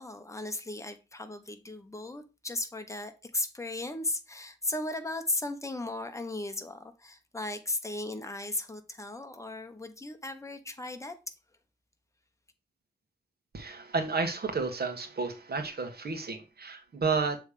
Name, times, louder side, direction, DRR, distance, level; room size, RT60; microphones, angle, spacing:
voice 1, 0.0-11.2, left 2 dB, 15° left, 0.9 m, -36 dB
voice 2, 13.5-17.4, right 4 dB, 65° right, 1.5 m, -31 dB
7.1 x 3.3 x 5.0 m
wide cardioid pair, 85°, 17 cm